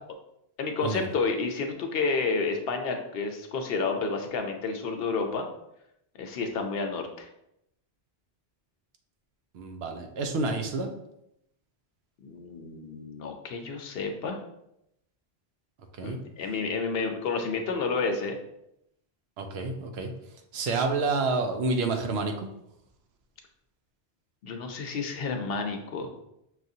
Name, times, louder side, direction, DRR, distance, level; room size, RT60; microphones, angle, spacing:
voice 1, 0.6-5.4 6.2-7.3 12.2-14.4 16.0-18.4 24.4-26.1, left 4 dB, 70° left, 4 dB, 0.8 m, -30 dB
voice 2, 9.5-10.9 16.0-16.2 19.4-20.1 20.5-22.5, right 3 dB, 80° right, 4 dB, 0.8 m, -29 dB
6.1 x 2.4 x 2.7 m, 0.80 s
omnidirectional pair, 1.1 m